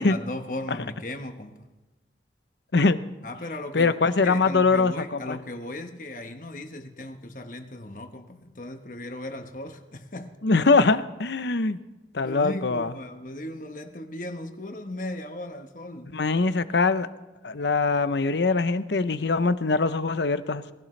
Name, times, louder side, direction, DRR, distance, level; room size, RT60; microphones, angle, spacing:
voice 1, 0.0-1.7 3.2-10.4 12.2-16.1, left 1 dB, 50° left, 1.3 m, -37 dB
voice 2, 3.7-5.4 10.4-11.8 12.1-12.9 16.1-17.1 17.4-20.7, left 3 dB, 75° left, 0.7 m, -22 dB
19.5 x 16.5 x 3.3 m
head